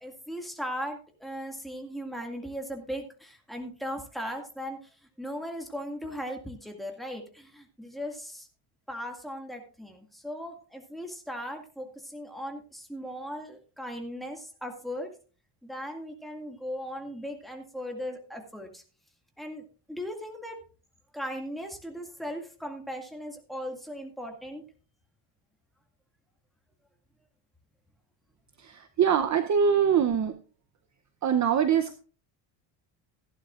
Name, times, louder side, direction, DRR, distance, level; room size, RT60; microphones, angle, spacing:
voice 1, 0.0-4.9 5.2-8.5 8.9-15.1 15.6-18.8 19.4-20.6 21.1-24.6, equal, ahead, 3 dB, 2.0 m, -38 dB
voice 2, 28.6-30.4 31.2-32.0, right 7 dB, 35° right, 9 dB, 0.7 m, -24 dB
15.5 x 11.5 x 2.4 m, 0.37 s
cardioid pair, 140°, 49 cm